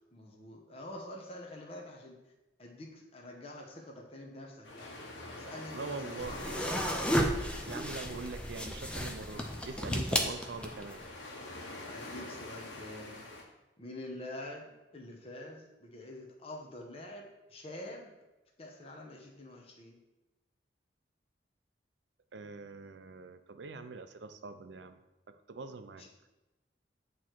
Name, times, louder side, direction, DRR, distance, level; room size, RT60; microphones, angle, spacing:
voice 1, 0.1-2.2 2.6-5.0 5.3-6.4 11.9-13.2 13.8-18.1 18.6-20.0 26.0-26.1, left 1 dB, 30° left, 0 dB, 0.8 m, -46 dB
sound 1, 4.6-13.4, left 2 dB, 85° left, 1.3 m, -46 dB
voice 2, 5.7-6.4 7.7-11.0 22.3-25.0 25.3-26.1, right 4 dB, 75° right, 9 dB, 0.5 m, -43 dB
sound 2, 6.2-11.0, equal, 5° left, 0.5 m, -33 dB
8.5 x 3.1 x 4.4 m, 1.0 s
head